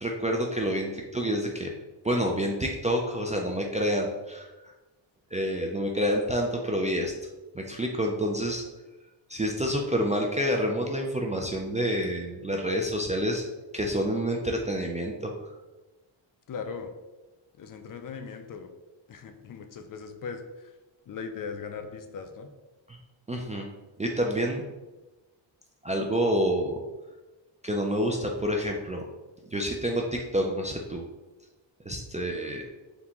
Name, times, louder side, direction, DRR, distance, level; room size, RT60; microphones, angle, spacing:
voice 1, 0.0-1.7 2.0-4.5 5.3-7.1 7.5-8.6 9.3-13.4 13.7-15.3 23.3-23.7 24.0-24.7 25.8-26.8 27.6-29.0 29.5-31.0 31.9-32.7, equal, 15° right, 1 dB, 0.3 m, -28 dB
voice 2, 16.5-16.9 17.6-18.7 19.1-20.7 21.1-22.5, left 5 dB, 45° left, 7 dB, 0.4 m, -39 dB
4.1 x 3.4 x 2.9 m, 1.1 s
cardioid pair, 105°, 46 cm